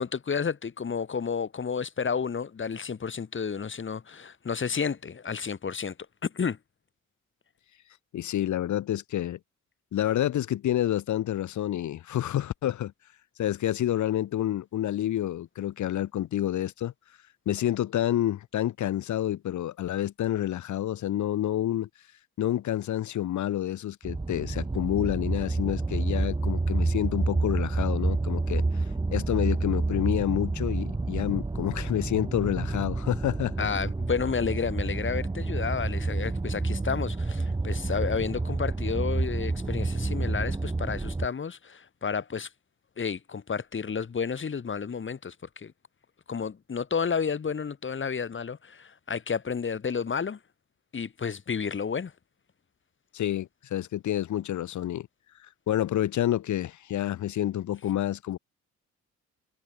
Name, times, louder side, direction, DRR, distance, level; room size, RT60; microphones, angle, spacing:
voice 1, 0.0-6.0 6.2-6.6 33.6-42.5 43.0-45.7 46.3-50.4 50.9-52.1, left 6 dB, 40° left, 5.5 m, -31 dB
voice 2, 8.1-9.4 9.9-12.9 13.4-16.9 17.5-21.9 22.4-28.6 29.1-33.7 53.1-55.1 55.7-58.4, left 12 dB, 75° left, 3.1 m, -28 dB
sound 1, 24.0-41.3, right 3 dB, 15° right, 1.5 m, -29 dB
cardioid pair, 90°, 30 cm